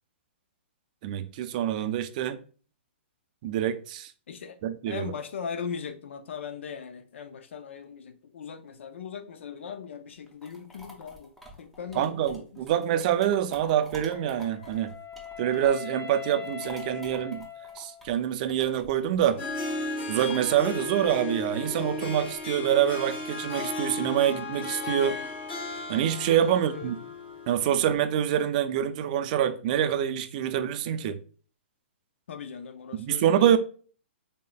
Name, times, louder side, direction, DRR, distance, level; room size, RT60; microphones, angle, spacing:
voice 1, 1.0-2.4 3.4-4.1 4.6-5.1 12.0-14.9 15.4-17.5 17.8-19.4 20.1-25.2 25.9-27.0 27.5-31.2 32.9-33.6, right 10 dB, 40° right, 0.4 m, -26 dB
voice 2, 4.3-4.6 4.9-11.3 11.6-12.6 12.9-13.0 26.4-27.1 32.3-33.5, left 7 dB, 75° left, 0.4 m, -39 dB
sound 1, 10.1-15.9 16.2-22.5, left 1 dB, ahead, 0.7 m, -49 dB
Wind instrument woodwind instrument, 14.1-18.2, left 8 dB, 45° left, 1.3 m, -41 dB
Harp, 19.2-27.9, left 3 dB, 25° left, 1.3 m, -35 dB
3.9 x 3.5 x 2.2 m
hypercardioid pair, 150°, 7 cm